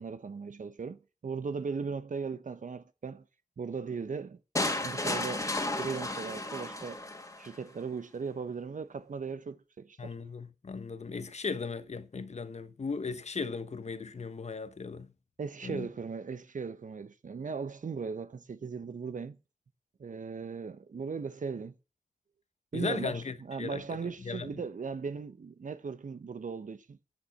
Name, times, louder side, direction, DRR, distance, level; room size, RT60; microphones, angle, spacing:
voice 1, 0.0-3.2 3.6-4.4 4.8-7.0 7.4-10.2 15.4-19.4 20.0-21.7 22.7-27.0, right 5 dB, 55° right, 1.1 m, -38 dB
sound 1, 4.6-7.6, left 2 dB, 20° left, 2.3 m, -33 dB
voice 2, 10.0-15.1 15.6-15.9 22.7-24.5, left 4 dB, 45° left, 1.2 m, -37 dB
12.0 x 7.3 x 9.1 m
wide cardioid pair, 125°, 16 cm